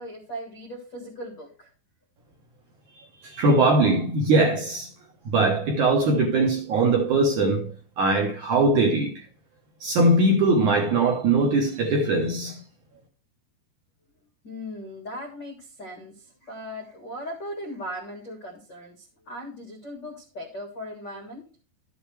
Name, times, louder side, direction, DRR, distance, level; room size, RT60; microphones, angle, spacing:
voice 1, 0.0-1.7 14.4-21.4, equal, 60° left, 1.1 m, -38 dB
voice 2, 3.2-4.9 5.3-9.2 9.8-12.6, right 2 dB, 65° right, 2.1 m, -21 dB
12.5 x 7.1 x 3.3 m
omnidirectional pair, 5.0 m